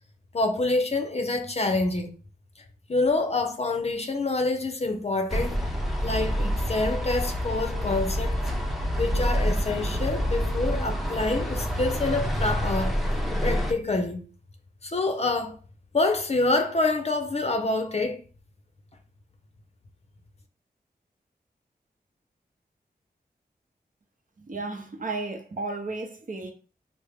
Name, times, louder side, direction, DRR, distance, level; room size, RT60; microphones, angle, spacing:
voice 1, 0.3-2.1 2.9-5.6 6.0-8.4 9.0-13.0 13.4-14.2 14.8-15.6 15.9-18.2, left 2 dB, 40° left, 0.6 m, -26 dB
sound 1, 5.3-13.7, equal, ahead, 0.6 m, -27 dB
voice 2, 24.4-26.5, right 3 dB, 55° right, 0.7 m, -33 dB
3.4 x 2.0 x 3.4 m
cardioid pair, 50°, 17 cm